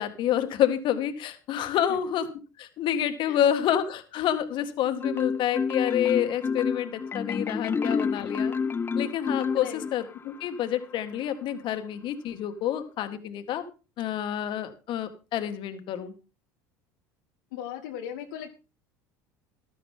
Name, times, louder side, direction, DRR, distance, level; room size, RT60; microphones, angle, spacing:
voice 1, 0.0-2.3 2.6-8.6 9.0-13.6 14.0-16.1, left 10 dB, 55° left, 8 dB, 1.9 m, -28 dB
Marimba xylophone, 5.0-10.2, left 5 dB, 25° left, 0.5 m, -28 dB
voice 2, 17.5-18.6, left 10 dB, 80° left, 3 dB, 1.3 m, -38 dB
14.0 x 12.5 x 3.7 m, 0.32 s
hypercardioid pair, 80°, 10 cm